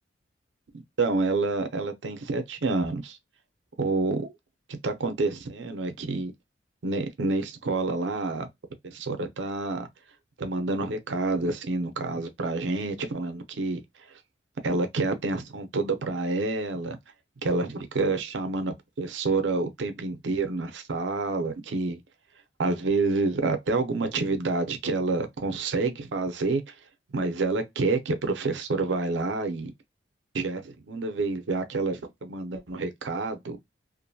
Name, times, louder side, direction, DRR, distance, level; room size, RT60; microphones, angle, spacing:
voice 1, 1.0-3.2 3.8-4.3 4.7-6.3 6.8-8.5 8.8-9.9 10.4-13.8 14.6-17.0 17.4-22.0 22.6-26.7 27.1-29.7 30.3-33.6, right 3 dB, 75° right, 0.6 m, -28 dB
2.5 x 2.2 x 2.6 m
head